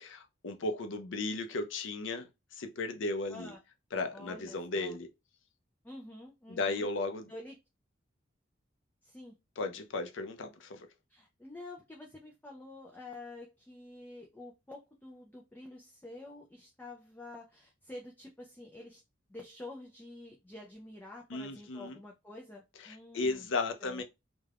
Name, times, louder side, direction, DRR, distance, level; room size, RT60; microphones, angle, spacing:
voice 1, 0.0-2.3 2.5-3.5 3.9-5.1 6.5-7.3 9.6-10.9 21.3-22.0 22.8-24.0, left 3 dB, 70° left, 0.5 m, -35 dB
voice 2, 4.1-5.0 5.8-6.9 7.3-7.6 9.0-9.4 11.1-19.0 19.3-23.5 23.8-24.0, left 2 dB, 10° left, 0.3 m, -48 dB
2.4 x 2.2 x 3.3 m
head